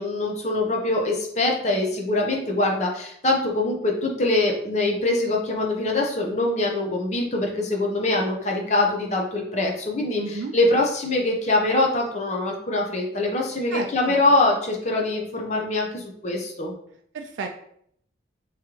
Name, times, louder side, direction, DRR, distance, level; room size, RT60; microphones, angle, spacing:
voice 1, 0.0-16.7, left 2 dB, 35° left, 1 dB, 0.7 m, -23 dB
voice 2, 10.2-10.5 13.7-14.1 17.1-17.5, right 4 dB, 85° right, 4 dB, 0.4 m, -32 dB
3.6 x 3.2 x 2.9 m, 0.68 s
head